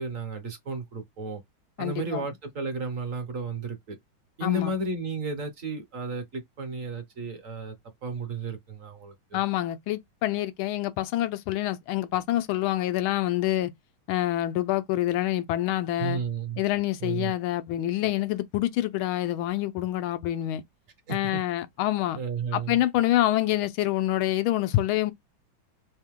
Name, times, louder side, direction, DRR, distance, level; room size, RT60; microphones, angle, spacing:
voice 1, 0.0-1.4 1.8-4.0 4.4-7.7 8.0-9.4 16.0-16.6 17.0-17.3 21.1-21.4 22.2-22.8, right 3 dB, 50° right, 1.1 m, -33 dB
voice 2, 1.8-2.2 4.4-4.7 9.3-13.7 14.1-16.2 16.6-20.6 21.1-22.2 22.5-25.1, left 14 dB, 90° left, 1.4 m, -26 dB
3.6 x 2.7 x 3.6 m
omnidirectional pair, 2.2 m